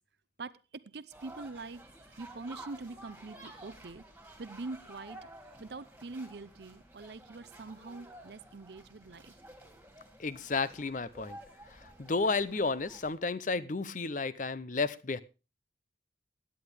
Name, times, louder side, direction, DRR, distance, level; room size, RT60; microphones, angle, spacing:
voice 1, 0.4-1.8 2.2-4.0 4.4-5.3 5.6-9.3, right 3 dB, 60° right, 0.6 m, -44 dB
sound 1, 1.1-13.1, right 1 dB, 10° right, 2.4 m, -52 dB
voice 2, 10.2-11.4 11.7-15.2, left 4 dB, 40° left, 0.6 m, -32 dB
16.5 x 10.0 x 3.4 m
head